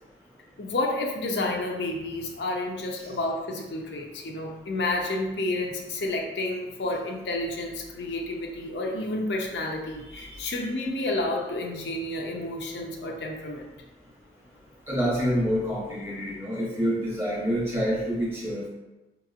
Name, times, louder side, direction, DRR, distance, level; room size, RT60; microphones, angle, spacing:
voice 1, 0.6-13.7, left 2 dB, 75° left, 0 dB, 0.6 m, -30 dB
voice 2, 14.9-18.7, equal, 15° right, -5 dB, 1.0 m, -27 dB
4.6 x 2.8 x 2.4 m, 1.0 s
head